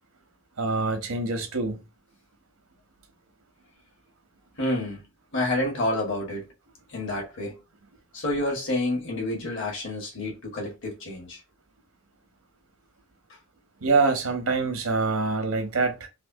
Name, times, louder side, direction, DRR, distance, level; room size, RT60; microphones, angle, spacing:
voice 1, 0.6-1.8 13.8-16.1, right 3 dB, 80° right, 0.9 m, -25 dB
voice 2, 4.6-5.0 5.3-6.5 6.9-7.6 8.1-11.4, left 1 dB, 60° left, 1.4 m, -29 dB
3.3 x 2.7 x 2.6 m
head